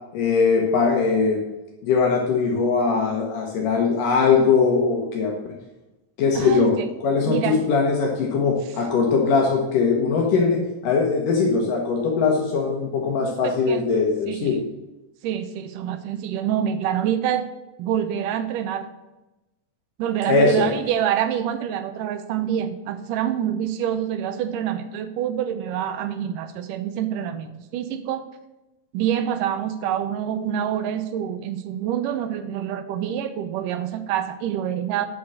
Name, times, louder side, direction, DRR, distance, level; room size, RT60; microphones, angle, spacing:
voice 1, 0.1-1.4 1.8-5.3 6.2-14.6 20.3-20.7, left 5 dB, 70° left, 0 dB, 2.8 m, -21 dB
voice 2, 6.4-6.9 7.3-7.6 13.2-13.8 14.3-14.6 15.2-17.5 17.8-18.9 20.0-28.3 28.9-35.1, right 10 dB, 75° right, 10 dB, 2.2 m, -26 dB
9.4 x 7.2 x 6.3 m, 1.0 s
omnidirectional pair, 4.0 m